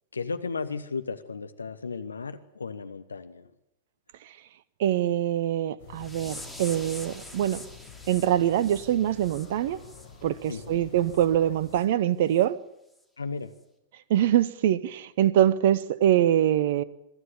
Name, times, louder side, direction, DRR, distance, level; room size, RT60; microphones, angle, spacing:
voice 1, 0.1-3.5 10.5-10.9 13.2-13.5, left 4 dB, 80° left, 1.1 m, -35 dB
voice 2, 4.8-7.6 8.1-9.8 10.2-12.6 14.1-16.8, right 11 dB, 55° right, 0.9 m, -24 dB
sound 1, 5.8-11.8, left 6 dB, 55° left, 4.8 m, -48 dB
sound 2, 5.9-10.7 11.0-11.3 11.7-11.8 12.3-12.4 12.9-13.0, left 1 dB, ahead, 2.9 m, -45 dB
23.5 x 13.0 x 9.9 m
figure-of-eight pair, 100°, 0 cm